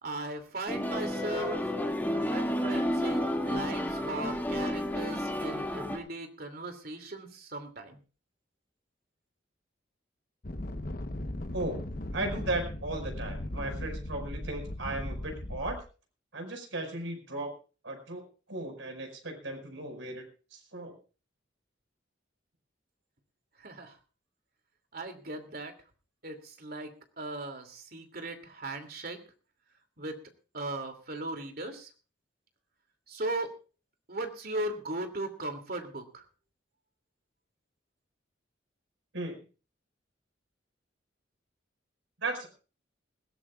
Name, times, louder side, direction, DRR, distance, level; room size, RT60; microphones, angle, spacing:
voice 1, 0.0-1.7 2.1-8.0 23.6-24.0 24.9-25.7 26.2-29.2 30.0-30.2 30.5-31.9 33.1-33.5 34.1-36.2, right 2 dB, 50° right, 7 dB, 2.7 m, -38 dB
sound 1, 0.7-6.0, left 1 dB, 10° left, 2.1 m, -31 dB
sound 2, 10.4-15.8, left 1 dB, 50° left, 1.0 m, -37 dB
voice 2, 12.1-15.8 16.3-17.5 17.8-18.2 18.5-20.3 20.5-21.0 39.1-39.4 42.2-42.5, right 2 dB, 85° right, 4 dB, 5.3 m, -36 dB
21.0 x 17.0 x 2.4 m, 0.37 s
head